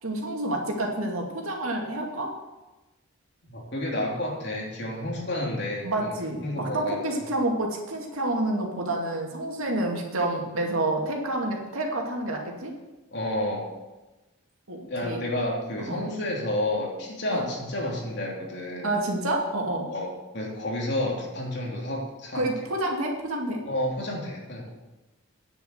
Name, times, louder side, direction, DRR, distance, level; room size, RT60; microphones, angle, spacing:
voice 1, 0.0-2.3 5.8-12.7 14.7-15.2 15.8-16.0 17.3-17.5 18.8-19.9 22.3-23.6, right 1 dB, 85° right, 0 dB, 2.4 m, -28 dB
voice 2, 3.5-7.0 13.1-13.7 14.9-18.9 19.9-20.1 20.3-22.4 23.6-24.7, left 1 dB, 55° left, -2 dB, 3.2 m, -30 dB
9.9 x 7.1 x 7.9 m, 1.1 s
head